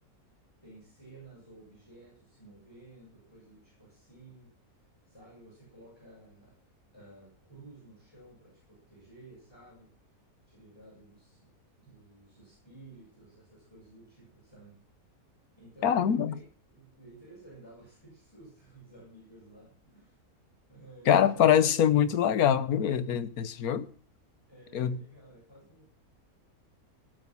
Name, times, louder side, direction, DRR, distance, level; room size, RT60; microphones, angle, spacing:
voice 1, 0.6-4.5 5.1-6.6 6.9-9.9 10.5-11.5 11.8-14.8 15.6-20.2 20.7-22.1 24.5-25.9, right 2 dB, 15° left, 7.2 m, -54 dB
voice 2, 15.8-16.3 21.1-23.9 24.7-25.0, left 9 dB, 80° left, 1.4 m, -24 dB
18.0 x 8.6 x 6.0 m
omnidirectional pair, 1.6 m